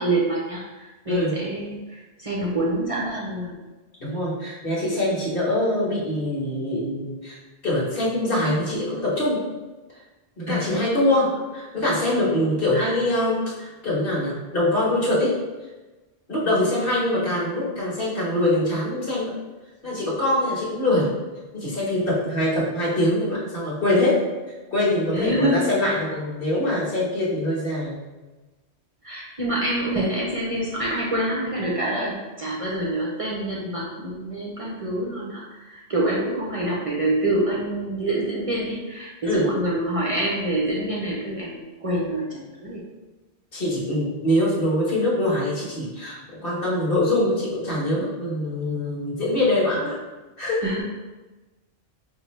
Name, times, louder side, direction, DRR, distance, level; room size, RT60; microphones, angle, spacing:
voice 1, 0.0-3.6 10.5-10.8 12.7-12.9 16.5-16.6 25.1-25.6 29.0-42.8 50.6-50.8, right 1 dB, 35° right, -5 dB, 0.7 m, -26 dB
voice 2, 1.1-1.4 4.0-7.4 7.6-9.4 10.4-15.4 16.3-19.3 19.8-21.1 21.5-24.2 24.7-28.0 39.2-39.5 43.5-50.0 50.4-50.7, left 1 dB, 60° left, -6 dB, 1.4 m, -23 dB
5.0 x 2.7 x 3.2 m, 1.2 s
omnidirectional pair, 1.1 m